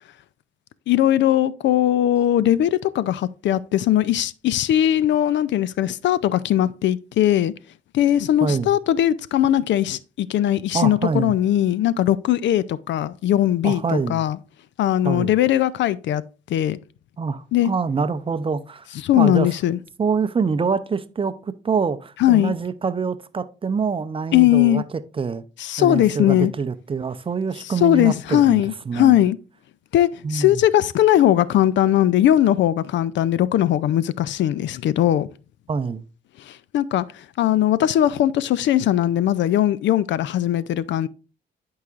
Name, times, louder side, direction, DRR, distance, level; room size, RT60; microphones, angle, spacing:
voice 1, 0.9-7.5 7.9-13.8 14.1-14.4 14.8-16.2 16.5-16.8 17.5-17.7 19.0-19.8 22.2-22.5 24.3-24.8 25.6-26.5 27.8-29.4 29.9-35.3 36.5-37.0 37.4-41.1, left 12 dB, 70° left, 0.4 m, -19 dB
voice 2, 8.4-8.8 10.7-11.3 13.6-14.2 15.0-15.3 17.2-18.9 19.2-19.5 20.0-25.4 25.8-29.2 30.2-30.6 35.7-36.0, right 5 dB, 25° right, 0.5 m, -25 dB
11.0 x 4.8 x 2.4 m
cardioid pair, 90°, 20 cm